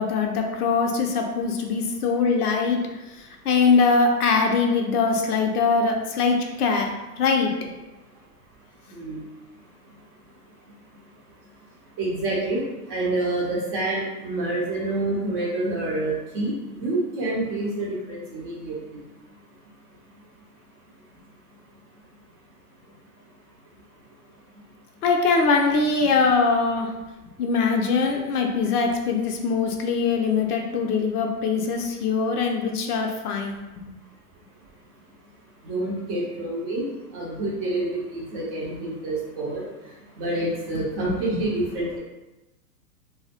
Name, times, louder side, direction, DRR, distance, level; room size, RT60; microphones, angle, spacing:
voice 1, 0.0-2.8 3.1-6.9 7.2-7.5 25.0-26.9 27.4-33.9 41.0-41.4, left 4 dB, 75° left, 2 dB, 0.6 m, -22 dB
voice 2, 12.0-12.6 12.9-19.0 35.6-39.6 40.2-42.0, right 2 dB, 30° right, -4 dB, 0.6 m, -27 dB
2.2 x 2.0 x 2.8 m, 1.0 s
hypercardioid pair, 115°, 46 cm